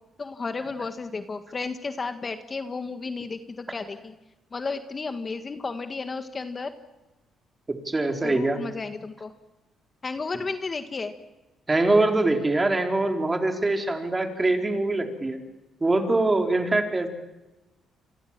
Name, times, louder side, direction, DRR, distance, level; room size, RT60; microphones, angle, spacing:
voice 1, 0.2-4.1 4.5-6.7 8.2-9.3 10.0-11.1, left 4 dB, 35° left, 8 dB, 1.7 m, -33 dB
voice 2, 7.8-8.6 11.7-15.4 15.8-17.1, right 2 dB, 20° right, 3 dB, 4.2 m, -23 dB
29.0 x 24.5 x 7.5 m, 1.1 s
cardioid pair, 90°, 0 cm